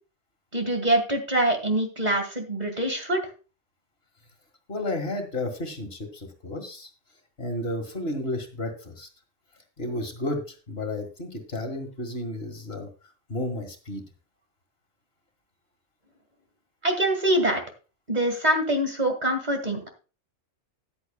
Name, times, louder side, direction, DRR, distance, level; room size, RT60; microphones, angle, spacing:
voice 1, 0.5-3.2 16.8-17.6 18.1-19.9, right 1 dB, 35° right, 4 dB, 2.1 m, -24 dB
voice 2, 4.7-6.9 7.4-9.1 9.8-12.9 13.3-14.0, left 1 dB, 55° left, 5 dB, 2.1 m, -32 dB
14.0 x 10.0 x 2.3 m, 0.33 s
omnidirectional pair, 1.2 m